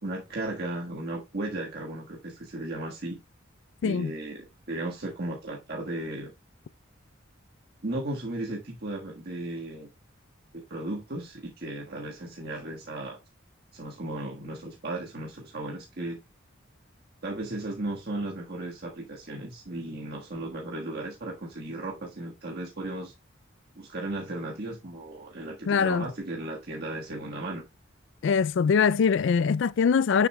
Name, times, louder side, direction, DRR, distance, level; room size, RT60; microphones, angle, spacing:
voice 1, 0.0-3.2 3.8-6.3 7.8-9.9 10.5-13.2 13.7-16.2 17.2-23.1 23.7-27.6, right 2 dB, 55° right, 1.5 m, -35 dB
voice 2, 25.7-26.1 28.2-30.3, left 6 dB, 65° left, 0.3 m, -23 dB
9.4 x 6.7 x 2.2 m
head